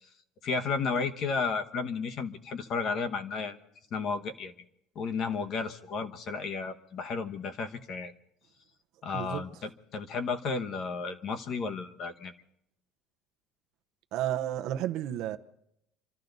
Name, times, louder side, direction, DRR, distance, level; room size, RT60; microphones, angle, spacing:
voice 1, 0.4-3.6 3.9-4.5 4.9-8.1 9.0-12.3, left 4 dB, 40° left, 1.1 m, -33 dB
voice 2, 9.1-9.4 14.1-15.4, right 12 dB, 50° right, 0.8 m, -32 dB
27.0 x 13.5 x 4.0 m
cardioid pair, 170°, 0 cm